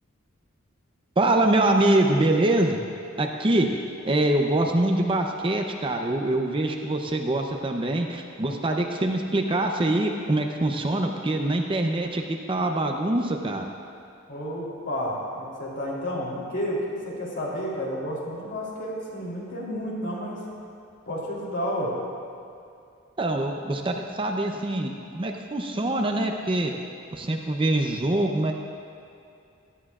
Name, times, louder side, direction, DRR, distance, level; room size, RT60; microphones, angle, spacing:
voice 1, 1.2-2.8 3.2-3.7 4.0-13.7 23.2-26.7 27.1-28.5, right 1 dB, 25° right, 3 dB, 0.6 m, -24 dB
voice 2, 14.3-20.4 21.0-21.9, equal, 60° left, -5 dB, 3.2 m, -31 dB
17.0 x 12.5 x 2.4 m, 2.5 s
head